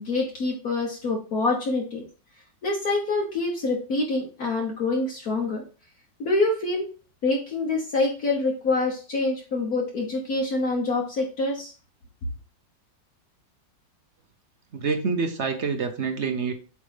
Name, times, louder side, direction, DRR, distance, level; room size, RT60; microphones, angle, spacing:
voice 1, 0.0-2.0 2.6-5.6 6.2-6.9 7.2-11.7, left 3 dB, 55° left, 0 dB, 1.6 m, -26 dB
voice 2, 14.7-16.5, right 5 dB, 55° right, 6 dB, 0.8 m, -27 dB
8.1 x 3.3 x 5.0 m, 0.36 s
omnidirectional pair, 2.0 m